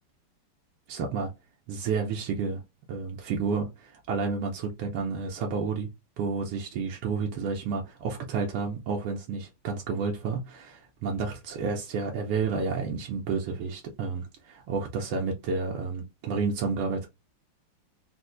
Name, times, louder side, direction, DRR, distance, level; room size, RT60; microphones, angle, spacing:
voice 1, 0.9-1.3 1.7-2.6 2.9-5.9 6.2-17.1, right 5 dB, 80° right, 1.5 m, -30 dB
4.4 x 2.1 x 2.5 m
omnidirectional pair, 2.4 m